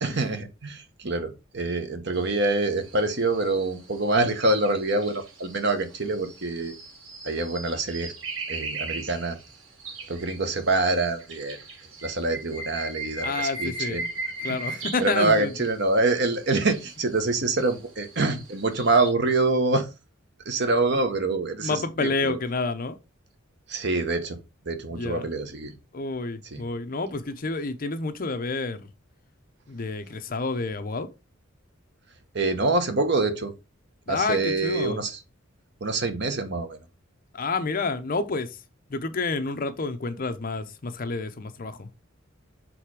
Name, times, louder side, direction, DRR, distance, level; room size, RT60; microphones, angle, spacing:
voice 1, 0.0-6.7 7.2-8.1 8.5-9.4 10.1-11.6 12.0-14.1 14.4-19.9 20.4-22.4 23.7-24.4 24.6-25.7 26.4-26.6 32.3-33.5 34.1-35.2 35.8-36.8, right 2 dB, 60° right, 1.2 m, -25 dB
sound 1, 2.1-19.1, right 3 dB, 90° right, 2.2 m, -39 dB
voice 2, 13.2-14.2 14.4-15.5 21.6-23.0 25.0-25.3 25.9-28.9 29.7-31.1 34.1-35.0 37.3-38.5 38.9-41.9, left 3 dB, 45° left, 0.7 m, -29 dB
6.3 x 3.3 x 4.7 m
head